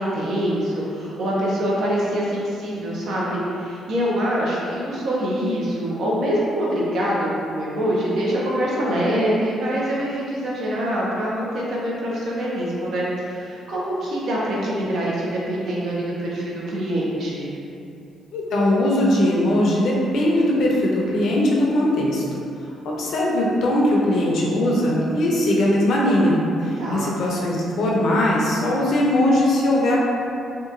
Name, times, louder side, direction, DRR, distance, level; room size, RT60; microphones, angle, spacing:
voice 1, 0.0-17.6 26.8-27.1, equal, 70° right, -6 dB, 0.7 m, -24 dB
voice 2, 18.3-22.2 22.8-30.0, left 1 dB, 70° left, -3 dB, 0.5 m, -20 dB
2.9 x 2.3 x 2.5 m, 2.6 s
cardioid pair, 90°, 0 cm